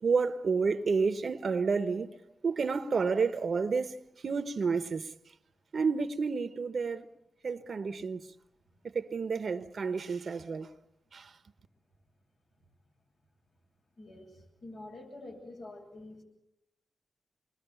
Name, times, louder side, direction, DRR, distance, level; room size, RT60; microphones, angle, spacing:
voice 1, 0.0-2.1 2.4-4.0 4.2-5.1 5.7-7.1 7.4-8.3 8.9-10.7 11.1-11.3, right 5 dB, 65° right, 1.0 m, -30 dB
voice 2, 14.0-16.2, left 2 dB, 75° left, 7.8 m, -47 dB
27.5 x 22.0 x 7.1 m
supercardioid pair, 45°, 0 cm